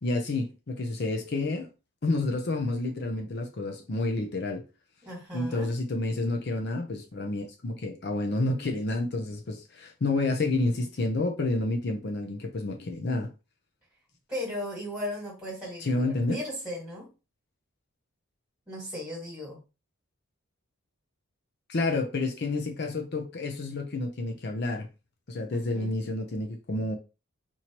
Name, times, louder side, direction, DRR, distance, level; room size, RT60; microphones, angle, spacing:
voice 1, 0.0-1.7 2.0-4.6 5.3-13.3 15.8-16.4 21.7-24.9 25.3-27.0, left 2 dB, 50° left, 0.6 m, -29 dB
voice 2, 5.0-5.7 14.3-17.1 18.7-19.6 25.5-26.0, left 1 dB, 5° right, 1.7 m, -37 dB
4.4 x 2.7 x 2.9 m
head